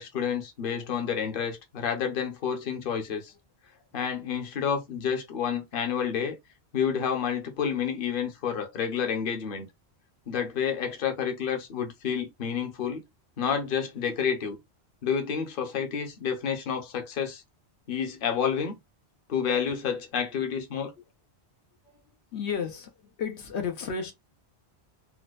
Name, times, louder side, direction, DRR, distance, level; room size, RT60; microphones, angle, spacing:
voice 1, 0.0-3.3 3.9-6.4 6.7-9.7 10.3-13.0 13.4-14.6 15.0-17.4 17.9-18.7 19.3-20.9, left 7 dB, 55° left, 1.0 m, -29 dB
voice 2, 22.3-22.9 23.2-24.1, left 6 dB, 80° left, 1.0 m, -33 dB
4.2 x 2.2 x 2.4 m
omnidirectional pair, 1.1 m